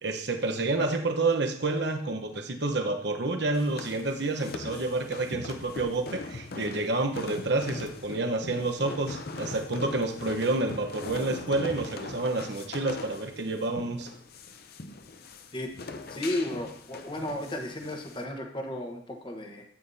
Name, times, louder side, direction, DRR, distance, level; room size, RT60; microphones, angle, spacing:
voice 1, 0.0-14.1, right 2 dB, 60° right, 4 dB, 1.1 m, -29 dB
sound 1, 3.5-18.2, left 3 dB, 50° left, 0.7 m, -41 dB
voice 2, 16.1-19.6, left 1 dB, 25° left, 3 dB, 1.2 m, -34 dB
13.0 x 8.9 x 2.8 m, 0.64 s
head